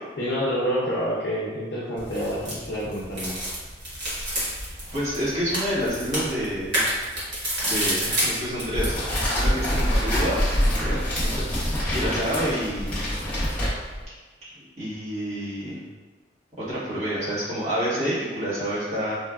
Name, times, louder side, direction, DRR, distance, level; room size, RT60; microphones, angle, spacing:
voice 1, 0.2-3.3, equal, 75° left, -8 dB, 0.5 m, -27 dB
sound 1, 2.0-9.0, equal, 85° right, 1.2 m, -29 dB
voice 2, 4.9-6.8 7.6-10.4 10.8-11.4 11.9-13.1 14.4-15.8 16.6-19.1, equal, 40° right, -12 dB, 1.2 m, -28 dB
sound 2, 8.7-14.0, equal, 10° left, 0.7 m, -25 dB
3.2 x 2.2 x 2.3 m, 1.3 s
head